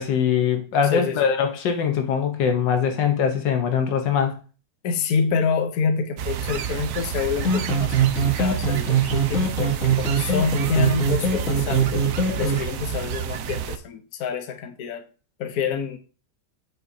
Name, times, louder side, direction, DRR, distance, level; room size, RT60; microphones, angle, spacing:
voice 1, 0.0-4.4, left 7 dB, 80° left, 1.7 m, -22 dB
voice 2, 0.9-1.3 4.8-12.1 12.4-15.0 15.4-16.0, left 5 dB, 60° left, 1.3 m, -27 dB
sound 1, 6.2-13.8, right 9 dB, 65° right, 0.9 m, -30 dB
sound 2, 7.4-12.6, right 4 dB, 45° left, 2.6 m, -22 dB
9.4 x 5.5 x 2.7 m
omnidirectional pair, 1.9 m